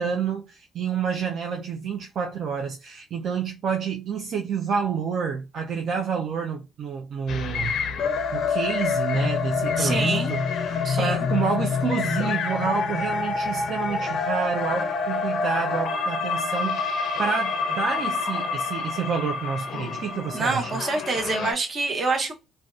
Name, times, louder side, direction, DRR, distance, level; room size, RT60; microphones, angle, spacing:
voice 1, 0.0-7.8 8.3-20.8, right 6 dB, 65° right, 0.3 m, -29 dB
sound 1, 7.3-21.5, left 5 dB, 70° left, 0.4 m, -27 dB
voice 2, 9.8-10.3 10.8-11.3 20.3-22.3, right 3 dB, 45° right, 0.7 m, -26 dB
2.5 x 2.1 x 2.3 m
cardioid pair, 90°, 0 cm